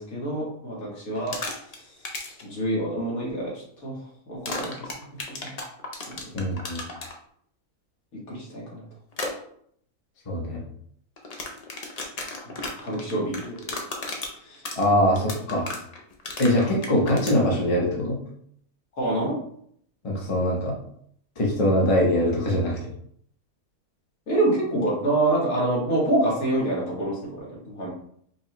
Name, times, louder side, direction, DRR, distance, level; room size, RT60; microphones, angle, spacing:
voice 1, 0.0-1.4 1.7-4.0 4.3-5.2 5.5-5.6 6.1-6.3 8.1-8.8 12.4-14.6 16.6-16.8 19.0-19.4 24.3-27.9, right 1 dB, 75° left, -5 dB, 1.8 m, -27 dB
sound 1, 1.1-1.8 2.0-2.4 4.4-7.1 9.1-9.3 11.2-17.4, left 3 dB, 55° left, 0.4 m, -34 dB
voice 2, 6.3-6.8 10.3-10.6 14.8-15.7 16.4-18.2 20.0-20.7 21.4-22.8, left 1 dB, 30° left, -3 dB, 0.8 m, -22 dB
5.2 x 2.3 x 2.9 m, 0.66 s
omnidirectional pair, 1.5 m